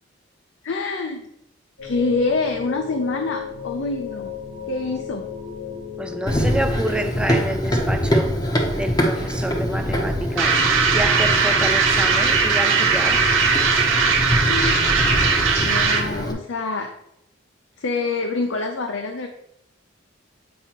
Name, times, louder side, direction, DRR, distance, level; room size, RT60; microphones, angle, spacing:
voice 1, 0.6-1.2 1.8-4.4 4.7-5.3 14.5-14.9 15.6-16.9 17.8-19.3, left 3 dB, 70° left, 0.5 m, -26 dB
sound 1, 1.8-7.0, left 8 dB, 90° left, 1.9 m, -34 dB
voice 2, 6.0-8.3 8.7-10.6 10.9-13.3, equal, 5° right, 0.4 m, -28 dB
Run, 6.3-16.3, equal, 20° left, 0.8 m, -24 dB
sound 2, 10.4-16.2, right 5 dB, 85° right, 1.0 m, -19 dB
7.4 x 4.7 x 3.0 m
head